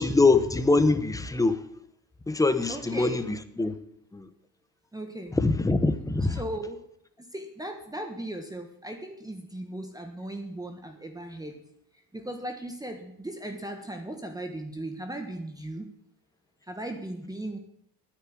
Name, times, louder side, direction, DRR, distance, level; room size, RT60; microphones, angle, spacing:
voice 1, 0.0-1.6 2.3-3.1 3.6-3.7 4.1-4.3 5.4-6.4, left 3 dB, 10° left, 11 dB, 1.0 m, -23 dB
voice 2, 2.7-3.3 4.9-5.4 6.3-6.8 7.2-11.6 12.1-15.9 16.7-17.6, right 1 dB, 10° right, 5 dB, 1.5 m, -37 dB
9.7 x 9.6 x 9.6 m, 0.71 s
cardioid pair, 130°, 41 cm